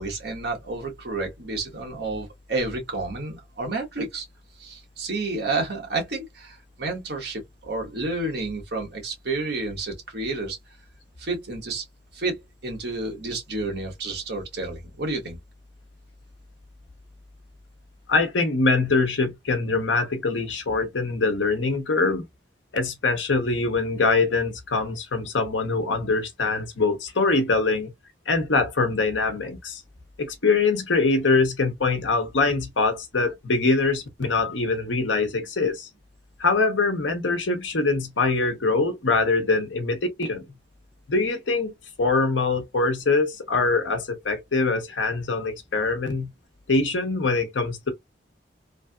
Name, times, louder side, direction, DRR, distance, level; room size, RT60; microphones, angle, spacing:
voice 1, 0.0-4.2 4.6-10.6 11.2-11.8 12.1-15.4, right 3 dB, 55° right, 1.3 m, -30 dB
voice 2, 18.1-22.3 22.7-27.9 28.3-29.8 30.2-35.9 36.4-40.4 41.1-41.7 42.0-46.3 46.7-47.9, left 3 dB, 75° left, 0.9 m, -23 dB
3.3 x 2.7 x 2.3 m
head